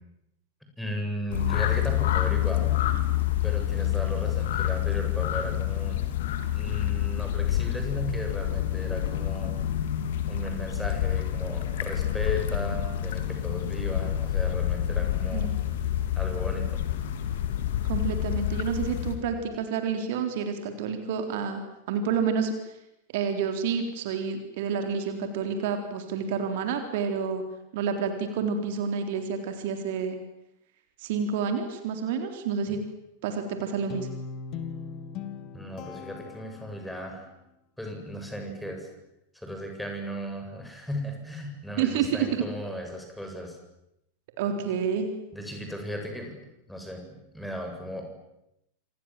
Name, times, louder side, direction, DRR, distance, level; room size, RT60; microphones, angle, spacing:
voice 1, 0.8-2.8 3.4-6.0 6.5-9.5 10.3-15.5 16.2-16.8 32.7-32.8 35.5-37.3 37.8-38.9 39.3-43.6 45.3-46.4 46.7-48.0, equal, 5° left, 3 dB, 7.7 m, -36 dB
sound 1, 1.3-19.1, left 12 dB, 55° left, 3.5 m, -28 dB
voice 2, 17.8-21.6 21.9-22.8 23.1-27.4 27.7-30.2 31.0-32.8 33.2-34.1 41.8-42.3 44.4-45.1, right 6 dB, 50° right, 6 dB, 3.8 m, -29 dB
Guitar, 33.9-37.2, left 6 dB, 40° left, 2.8 m, -39 dB
28.0 x 27.5 x 7.7 m, 0.85 s
figure-of-eight pair, 90°, 0 cm